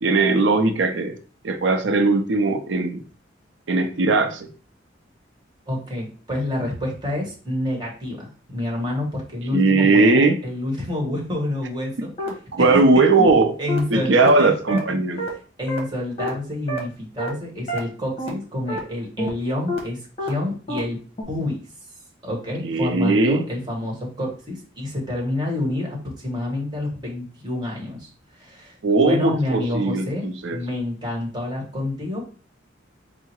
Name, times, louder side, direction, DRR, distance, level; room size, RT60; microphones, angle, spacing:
voice 1, 0.0-1.1 1.4-3.0 3.7-4.5 9.5-10.4 12.5-13.5 13.9-15.3 22.6-23.5 28.8-30.6, right 3 dB, 80° right, 7 dB, 0.6 m, -19 dB
voice 2, 5.7-12.1 12.7-13.1 13.6-14.5 14.9-15.0 15.6-21.0 21.3-21.6 22.2-30.2 30.5-32.2, left 1 dB, 25° right, -2 dB, 1.3 m, -28 dB
sound 1, 12.2-12.3 12.7-12.8 13.2-13.3 13.7-13.8 14.2-14.3 14.7-14.8 15.2-15.3 15.7-15.8 16.2-16.3 16.7-16.8 17.2-17.3 17.7-17.8 18.2-18.3 18.7-18.8 19.2-19.3 19.7-19.8 20.2-20.3 20.7-20.8 21.2-21.3, equal, 35° left, 1.1 m, -27 dB
4.6 x 2.1 x 4.4 m, 0.39 s
head